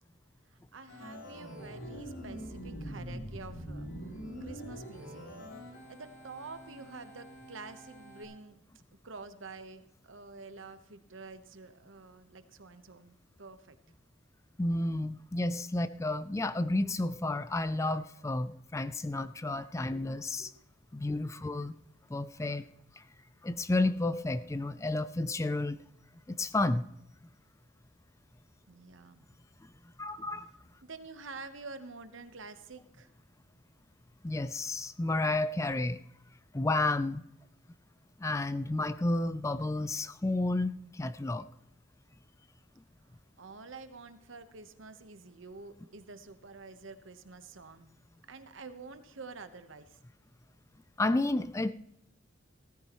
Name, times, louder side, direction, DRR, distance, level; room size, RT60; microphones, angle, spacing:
voice 1, 0.5-5.2 5.7-8.6 9.0-14.0 20.4-20.6 21.5-21.6 28.7-29.3 30.8-33.1 43.1-47.9 48.3-50.0, right 3 dB, 75° right, 10 dB, 1.1 m, -48 dB
Organ, 0.9-8.2, equal, 90° left, 3.7 m, -44 dB
voice 2, 14.6-20.5 20.9-21.8 22.1-22.6 23.0-23.1 23.4-25.8 26.3-26.8 30.0-30.5 34.2-36.0 36.5-37.3 38.2-41.5 51.0-51.7, left 2 dB, 15° left, 14 dB, 0.4 m, -31 dB
16.5 x 14.0 x 3.1 m, 0.79 s
head